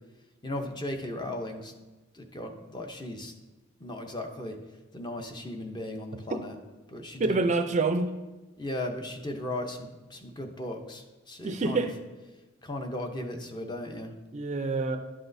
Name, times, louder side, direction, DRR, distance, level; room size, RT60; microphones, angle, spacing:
voice 1, 0.4-1.7 2.1-3.3 3.8-4.6 4.9-6.5 6.9-7.4 8.6-11.9 12.6-14.1, left 1 dB, 20° left, 4 dB, 0.6 m, -36 dB
voice 2, 7.3-8.1 11.4-11.9 14.3-15.0, right 3 dB, 35° right, 7 dB, 0.4 m, -27 dB
11.0 x 5.9 x 2.6 m, 1.2 s
head